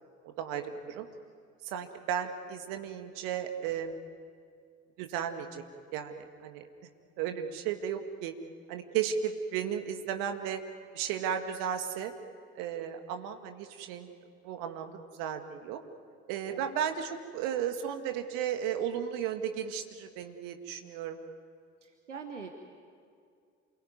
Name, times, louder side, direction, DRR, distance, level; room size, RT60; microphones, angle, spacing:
voice 1, 0.2-1.1 1.6-4.1 5.0-5.6 5.9-6.6 7.2-8.3 8.7-10.6 10.9-12.1 12.6-14.1 14.4-15.8 16.3-21.2, right 8 dB, 65° right, 6 dB, 1.9 m, -34 dB
voice 2, 21.8-22.5, right 5 dB, 85° right, 5 dB, 1.3 m, -44 dB
28.0 x 21.5 x 9.5 m, 2.3 s
figure-of-eight pair, 50°, 35 cm